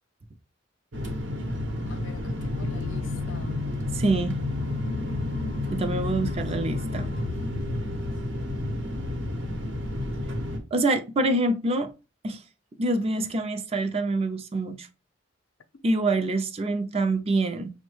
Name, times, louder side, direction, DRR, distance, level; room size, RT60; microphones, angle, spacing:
sound 1, 0.9-10.6, left 2 dB, 70° right, 0.8 m, -30 dB
voice 1, 1.9-3.7 4.8-5.6, left 3 dB, 80° left, 0.5 m, -42 dB
voice 2, 4.0-4.4 5.7-7.1 10.7-11.9 12.2-12.4 12.8-14.9 15.8-17.7, right 2 dB, 30° right, 0.4 m, -26 dB
5.4 x 2.1 x 3.0 m
head